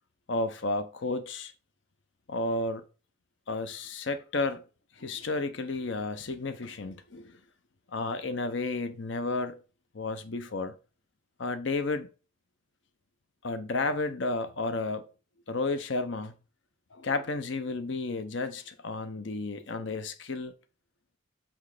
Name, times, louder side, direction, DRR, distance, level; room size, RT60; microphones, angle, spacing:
voice 1, 0.3-1.5 2.3-2.8 3.5-4.6 5.0-7.4 7.9-9.6 9.9-10.7 11.4-12.1 13.4-15.1 15.5-16.3 16.9-20.5, left 3 dB, 65° left, 0.8 m, -32 dB
6.3 x 6.0 x 4.9 m
head